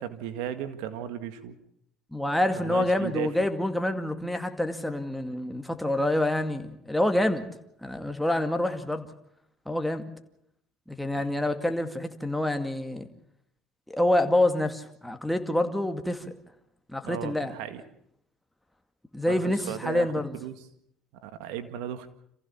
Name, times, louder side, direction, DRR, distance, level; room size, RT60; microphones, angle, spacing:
voice 1, 0.0-1.6 2.6-3.4 11.2-11.5 17.0-17.8 19.3-20.7 21.2-22.1, right 10 dB, 85° right, 10 dB, 1.9 m, -36 dB
voice 2, 2.1-7.5 7.8-9.1 9.7-10.0 10.9-13.1 13.9-16.3 16.9-17.5 19.1-20.3, left 1 dB, 5° left, 6 dB, 2.2 m, -27 dB
27.0 x 15.5 x 7.2 m, 0.75 s
supercardioid pair, 95°, 0 cm